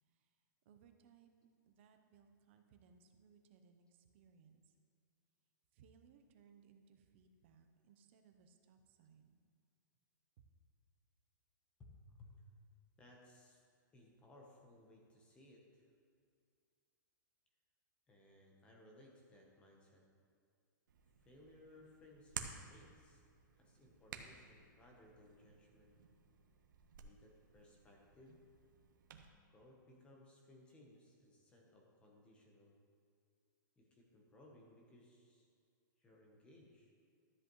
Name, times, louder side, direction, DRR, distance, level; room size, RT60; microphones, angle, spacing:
voice 1, 0.0-0.4 0.6-4.8 5.7-9.4, right 6 dB, 35° right, 6 dB, 0.7 m, -67 dB
voice 2, 11.8-12.4 13.0-13.6 13.9-15.9 18.1-20.1 21.2-23.2 23.6-26.0 27.0-28.4 29.5-32.8 33.8-35.5 36.0-36.9, left 1 dB, 10° left, 0 dB, 1.0 m, -63 dB
Hands, 20.9-29.3, right 7 dB, 70° right, 0.9 m, -54 dB
13.0 x 7.9 x 3.1 m, 2.2 s
hypercardioid pair, 175°, 11 cm